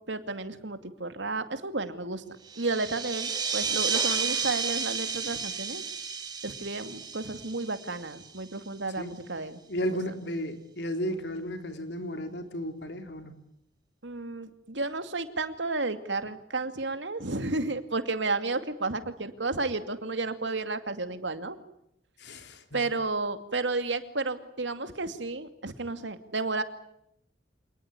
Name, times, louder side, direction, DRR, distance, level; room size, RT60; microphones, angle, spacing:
voice 1, 0.1-2.2 2.6-5.8 6.4-9.6 14.0-21.6 22.7-26.6, right 3 dB, 85° right, 9 dB, 2.5 m, -32 dB
sound 1, 2.5-8.6, right 5 dB, 25° right, 4.2 m, -32 dB
voice 2, 9.7-13.3 22.2-22.8, equal, 70° left, 7 dB, 3.5 m, -34 dB
27.5 x 20.0 x 9.8 m, 0.76 s
head